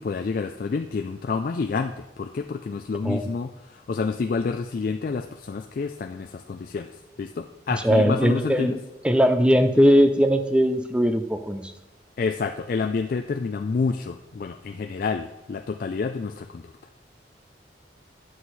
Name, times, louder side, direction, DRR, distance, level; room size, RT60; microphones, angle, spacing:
voice 1, 0.0-6.9 7.2-8.8 12.2-16.7, left 4 dB, 50° left, 5 dB, 0.3 m, -29 dB
voice 2, 7.7-8.7 9.0-11.7, equal, 5° right, 7 dB, 0.5 m, -19 dB
9.5 x 6.4 x 4.1 m, 1.0 s
head